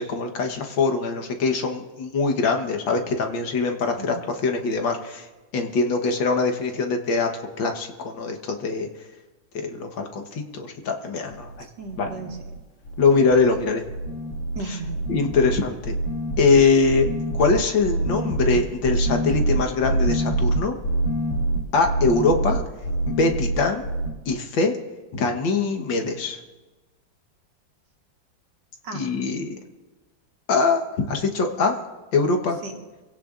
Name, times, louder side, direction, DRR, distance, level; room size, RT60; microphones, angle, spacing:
voice 1, 0.0-4.2 4.4-5.3 5.5-7.3 7.6-8.9 9.5-11.7 12.0-12.1 13.0-13.8 15.1-15.9 16.4-17.1 17.4-20.7 21.7-22.6 23.1-23.8 24.3-24.7 25.1-26.4 28.9-29.6 30.5-31.7 32.1-32.6, left 4 dB, 80° left, 4 dB, 2.0 m, -22 dB
sound 1, 11.3-11.6 11.8-12.6 12.8-13.6 13.8-24.1, right 2 dB, 40° left, 1.9 m, -26 dB
voice 2, 11.6-12.4 14.6-15.0 28.8-29.1 32.6-32.8, right 3 dB, 70° right, 2 dB, 2.2 m, -35 dB
25.0 x 17.0 x 2.5 m, 1.2 s
omnidirectional pair, 2.0 m